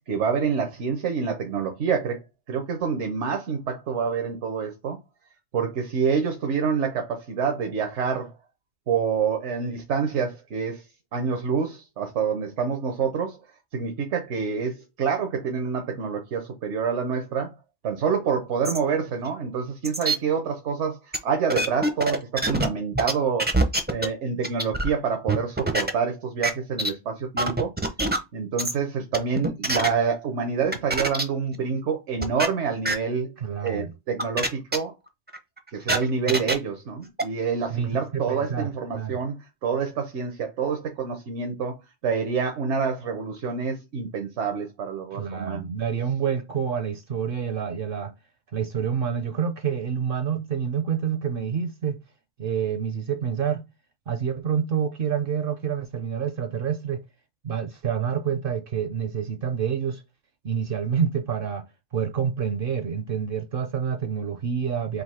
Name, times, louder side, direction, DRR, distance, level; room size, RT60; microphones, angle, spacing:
voice 1, 0.1-2.2 2.5-5.0 5.5-8.3 8.9-10.8 11.1-13.4 13.7-17.5 17.8-21.0 21.2-23.5 23.9-27.7 28.3-33.3 33.6-34.9 35.7-39.4 39.6-41.8 42.0-45.7, right 6 dB, 85° right, 1.2 m, -27 dB
sound 1, 18.6-18.8 19.3-19.4 19.8-20.2 21.1-21.2 21.5-22.7 22.9-23.1 23.4-24.1 24.4-24.9 25.3-25.9 26.4-26.5 26.8-26.9 27.4-28.2 28.6-28.7 29.1-29.9 30.7-31.2 31.5-31.6 32.2-32.5 32.9-33.0 33.7-33.8 34.2-34.5 34.7-34.8 35.3-36.5 37.2-37.3, right 2 dB, 15° right, 0.4 m, -24 dB
voice 2, 33.4-33.9 36.3-36.4 37.7-39.2 45.1-48.1 48.5-52.0 52.4-53.6 54.1-57.0 57.4-60.0 60.4-61.7 61.9-65.0, right 7 dB, 60° right, 0.7 m, -28 dB
3.9 x 2.7 x 4.1 m
omnidirectional pair, 1.2 m